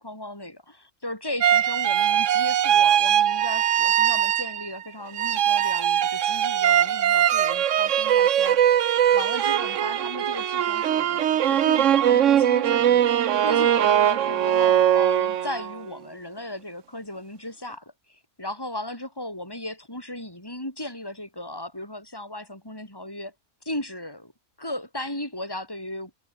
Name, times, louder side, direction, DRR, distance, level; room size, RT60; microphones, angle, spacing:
voice 1, 0.0-8.6 9.1-23.3 23.6-24.3 24.6-26.1, left 1 dB, 15° left, 6.4 m, -36 dB
sound 1, 1.4-4.8 5.1-15.8, right 10 dB, 60° right, 1.1 m, -21 dB
omnidirectional pair, 1.5 m